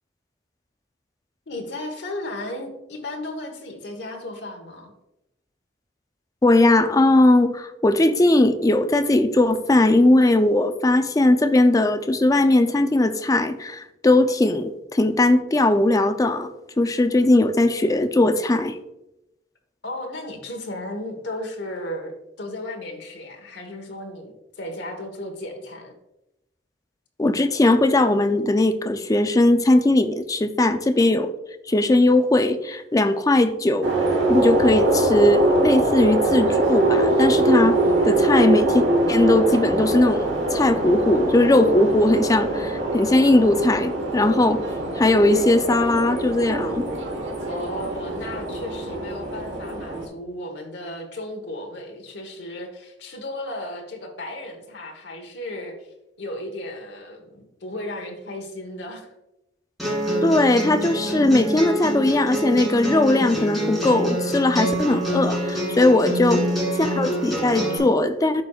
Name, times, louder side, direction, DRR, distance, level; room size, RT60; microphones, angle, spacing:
voice 1, 1.5-4.9 19.8-22.1 22.4-25.9 47.5-55.9 56.2-59.1 66.2-66.8, left 1 dB, 75° left, 3 dB, 1.2 m, -35 dB
voice 2, 6.4-16.5 16.8-18.8 27.2-31.3 31.7-33.9 34.3-37.8 38.0-44.6 45.0-46.8 60.2-66.4 66.8-68.4, left 2 dB, 20° left, 9 dB, 0.4 m, -19 dB
sound 1, 33.8-50.1, right 2 dB, 90° right, 1.2 m, -23 dB
sound 2, 59.8-67.8, equal, ahead, 2.3 m, -26 dB
11.0 x 4.4 x 2.3 m, 0.89 s
head